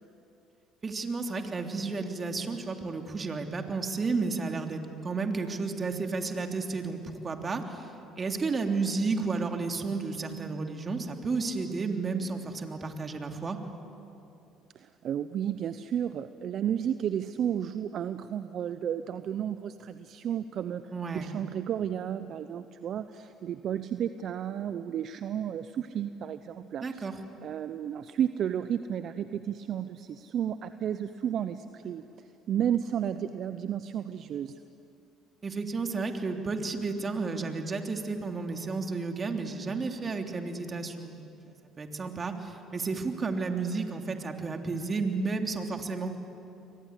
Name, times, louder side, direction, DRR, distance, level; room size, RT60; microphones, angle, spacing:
voice 1, 0.8-7.9 8.2-13.6 20.9-21.3 26.8-27.1 35.4-41.3 41.8-46.2, right 4 dB, 35° right, 4 dB, 3.2 m, -32 dB
voice 2, 14.7-27.1 27.4-32.0 32.5-34.6, right 9 dB, 55° right, 11 dB, 0.8 m, -32 dB
29.5 x 24.0 x 8.3 m, 2.7 s
hypercardioid pair, 65°, 0 cm